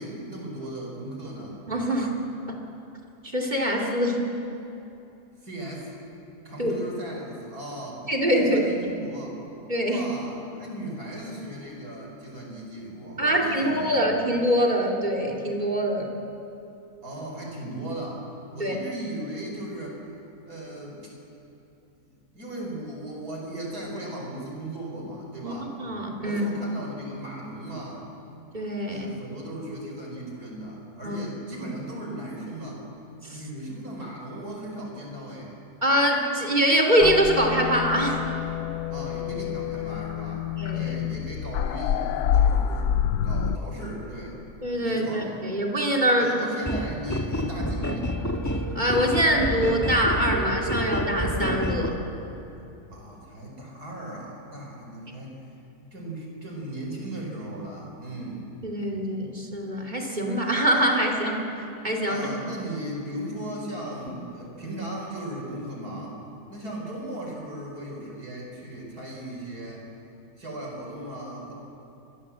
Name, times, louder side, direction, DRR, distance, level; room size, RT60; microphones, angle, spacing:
voice 1, 0.0-1.6 5.4-6.0 6.4-8.0 8.4-9.3 9.8-14.0 17.0-20.0 20.4-21.1 22.0-25.7 26.2-28.1 28.9-32.8 33.3-35.7 38.9-43.0 43.2-44.4 44.8-45.3 46.2-48.1 52.9-55.5 55.9-58.5 62.1-66.2 66.5-69.9 70.4-71.5, right 1 dB, 80° right, -1 dB, 5.4 m, -37 dB
voice 2, 1.7-2.1 3.2-4.2 6.6-6.7 8.1-9.0 9.7-10.0 13.2-16.2 18.6-18.7 25.4-25.5 25.8-26.5 28.5-29.1 31.0-31.2 31.6-31.7 33.2-33.4 35.8-38.2 40.6-40.9 44.6-46.3 48.7-52.0 58.6-61.5 61.8-62.3 64.1-64.2, equal, 30° right, 1 dB, 2.9 m, -24 dB
sound 1, 37.0-43.6, left 9 dB, 80° left, 1.2 m, -27 dB
sound 2, 46.6-51.9, equal, 10° left, 1.6 m, -28 dB
25.5 x 21.5 x 7.6 m, 2.9 s
omnidirectional pair, 1.6 m